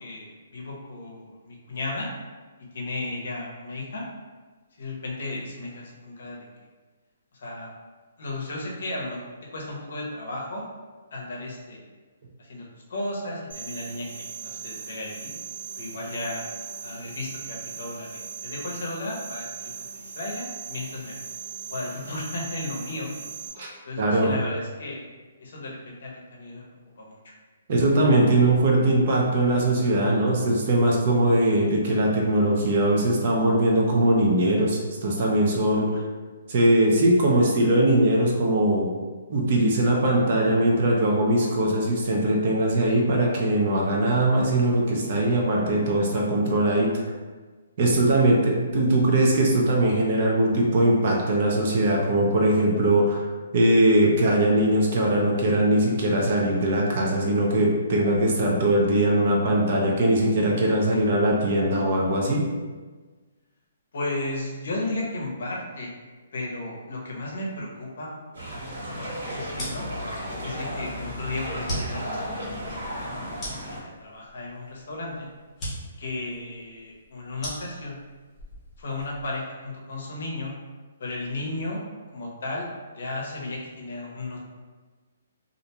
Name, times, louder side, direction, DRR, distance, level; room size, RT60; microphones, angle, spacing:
voice 1, 0.0-2.1 2.7-4.1 4.8-6.5 7.3-7.7 8.2-9.2 9.5-10.6 11.1-11.8 12.4-15.3 15.8-21.2 21.7-23.1 23.8-25.0 25.4-26.6 27.0-27.3 60.9-61.0 63.9-65.9 66.3-68.2 69.0-69.9 70.4-73.3 73.7-75.3 76.0-78.0 78.8-80.5 81.0-81.8 82.1-82.7 82.9-84.4, left 2 dB, 60° left, -2 dB, 0.6 m, -34 dB
sound 1, 13.5-23.5, right 6 dB, 85° right, 0.6 m, -39 dB
voice 2, 24.0-24.3 27.7-36.0 36.5-38.9 39.3-46.9 47.8-53.3 53.5-62.4, right 1 dB, 40° right, -1 dB, 0.4 m, -21 dB
sound 2, 68.3-73.8, equal, 65° right, 1.0 m, -34 dB
sound 3, 69.5-79.4, equal, 10° left, 0.6 m, -39 dB
2.4 x 2.1 x 2.8 m, 1.4 s
hypercardioid pair, 175°, 0 cm